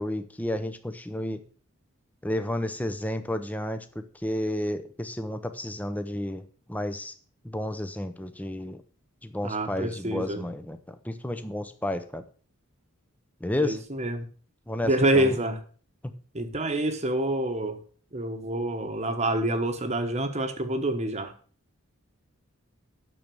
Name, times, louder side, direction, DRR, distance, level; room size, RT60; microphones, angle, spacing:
voice 1, 0.0-1.4 2.2-7.1 7.4-8.8 9.2-12.2 13.4-13.8 14.7-15.3, left 1 dB, 5° left, 10 dB, 0.7 m, -31 dB
voice 2, 9.4-10.4 13.6-14.3 14.8-15.6 16.3-17.8 18.1-21.3, right 1 dB, 30° right, 7 dB, 1.1 m, -27 dB
9.2 x 6.8 x 6.9 m, 0.43 s
head